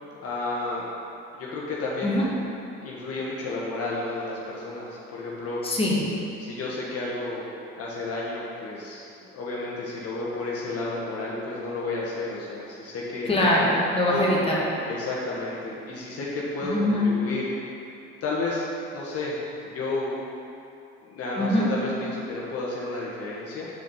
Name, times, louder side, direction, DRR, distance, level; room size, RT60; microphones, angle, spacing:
voice 1, 0.2-0.9 1.3-2.3 2.8-5.6 6.4-7.4 7.8-13.3 14.1-14.5 14.8-17.5 18.2-19.4 19.6-20.2 21.0-23.7, left 2 dB, 55° left, -5 dB, 1.4 m, -31 dB
voice 2, 5.6-6.1 13.3-14.6 16.7-17.1 21.4-21.7, left 1 dB, 20° left, -5 dB, 1.8 m, -22 dB
6.1 x 5.2 x 5.5 m, 2.7 s
supercardioid pair, 80°, 29 cm